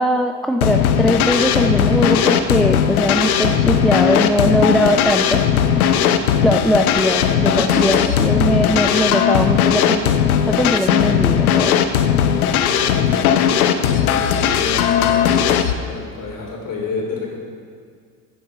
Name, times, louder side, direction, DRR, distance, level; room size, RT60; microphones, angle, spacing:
voice 1, 0.0-5.4 6.4-10.2 10.5-11.8, equal, ahead, 5 dB, 0.4 m, -20 dB
sound 1, 0.6-15.7, left 8 dB, 85° left, 0.7 m, -17 dB
voice 2, 12.4-15.6 15.9-17.4, left 3 dB, 50° left, -1 dB, 3.5 m, -30 dB
14.0 x 7.8 x 4.8 m, 2.2 s
hypercardioid pair, 70°, 43 cm